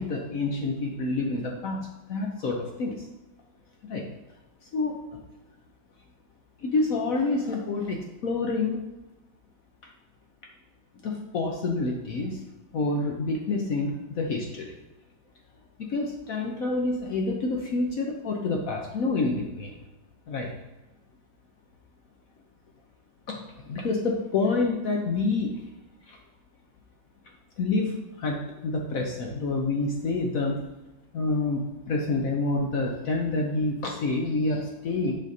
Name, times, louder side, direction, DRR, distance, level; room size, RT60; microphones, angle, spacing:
voice 1, 0.0-3.1 3.9-4.0 4.7-5.2 6.6-8.8 11.0-12.4 12.7-14.7 15.8-19.7 20.3-20.5 23.3-23.4 23.7-25.5 26.1-26.2 27.6-30.6 31.1-35.1, left 3 dB, 65° left, 1 dB, 0.9 m, -28 dB
7.2 x 5.5 x 2.7 m, 1.0 s
omnidirectional pair, 2.1 m